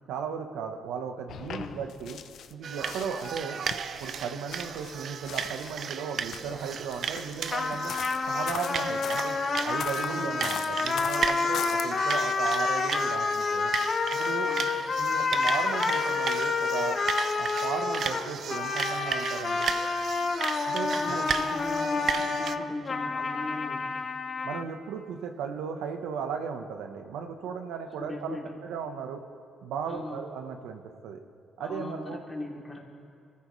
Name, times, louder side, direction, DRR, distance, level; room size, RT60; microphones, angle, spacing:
voice 1, 0.1-2.2 2.5-3.6 4.0-7.9 8.3-9.4 9.6-13.7 14.1-14.5 15.0-17.0 17.4-19.7 20.7-21.2 24.4-28.4 28.6-29.2 29.6-31.2 31.6-32.2, right 6 dB, 90° right, 5 dB, 1.1 m, -36 dB
sound 1, 1.3-2.5 2.8-5.8 6.2-9.3 9.8-11.8, left 8 dB, 70° left, 0.6 m, -41 dB
voice 2, 1.5-1.8 10.1-10.5 14.4-14.8 20.9-23.9 28.0-28.6 29.8-30.3 31.6-32.9, left 2 dB, 20° left, -2 dB, 3.0 m, -39 dB
sound 2, 2.6-22.6, right 7 dB, 60° right, 0.6 m, -35 dB
sound 3, 7.5-24.7, left 4 dB, 40° left, 0.9 m, -29 dB
25.0 x 14.5 x 3.2 m, 2.2 s
cardioid pair, 90°, 0 cm